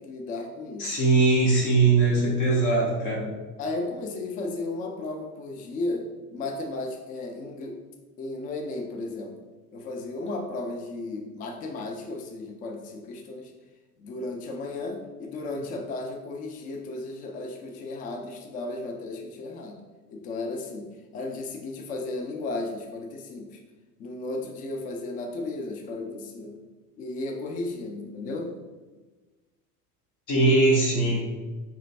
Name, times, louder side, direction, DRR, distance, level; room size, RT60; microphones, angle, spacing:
voice 1, 0.0-1.0 3.6-7.8 8.2-9.4 9.7-13.5 14.0-19.8 20.1-23.6 24.0-26.6 27.0-28.7, left 2 dB, 20° left, 3 dB, 0.4 m, -34 dB
voice 2, 0.8-3.3 30.3-31.2, right 3 dB, 40° left, -3 dB, 1.2 m, -21 dB
5.0 x 3.4 x 2.5 m, 1.2 s
figure-of-eight pair, 70°, 49 cm